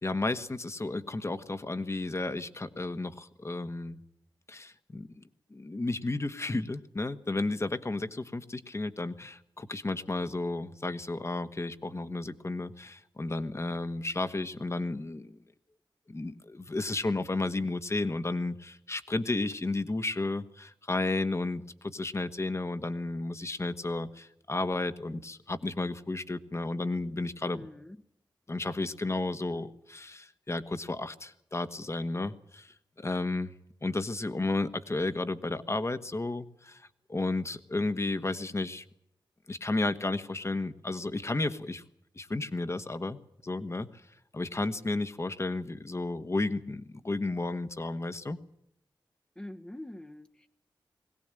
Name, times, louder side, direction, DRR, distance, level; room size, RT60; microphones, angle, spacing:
voice 1, 0.0-4.0 4.5-5.2 5.5-15.4 16.1-27.7 28.5-33.5 33.8-38.8 39.5-41.8 42.1-43.2 43.4-43.9 44.3-48.4, left 2 dB, 35° left, 11 dB, 1.4 m, -33 dB
voice 2, 27.4-28.0 49.3-50.5, left 1 dB, 10° left, 4 dB, 1.1 m, -44 dB
21.0 x 17.5 x 9.0 m, 0.77 s
wide cardioid pair, 70°, 8 cm